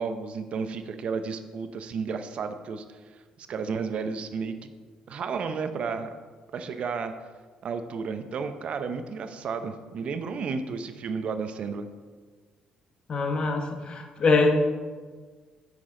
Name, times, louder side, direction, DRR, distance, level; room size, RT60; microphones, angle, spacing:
voice 1, 0.0-4.7 5.1-6.1 6.5-7.1 7.6-11.9, right 5 dB, 55° right, 9 dB, 0.6 m, -32 dB
voice 2, 13.1-14.5, left 3 dB, 40° left, 4 dB, 0.9 m, -23 dB
8.7 x 6.1 x 3.8 m, 1.5 s
cardioid pair, 110°, 2 cm